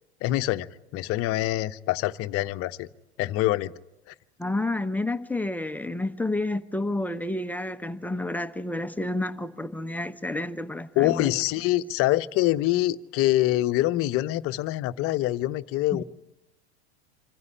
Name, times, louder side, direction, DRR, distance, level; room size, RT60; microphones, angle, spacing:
voice 1, 0.2-0.7 0.9-2.9 3.2-3.7 4.1-4.2 11.0-16.0, left 16 dB, 45° left, 0.9 m, -25 dB
voice 2, 4.4-11.3 15.9-16.0, left 2 dB, 5° left, 0.9 m, -30 dB
26.0 x 15.0 x 9.8 m
hypercardioid pair, 85°, 32 cm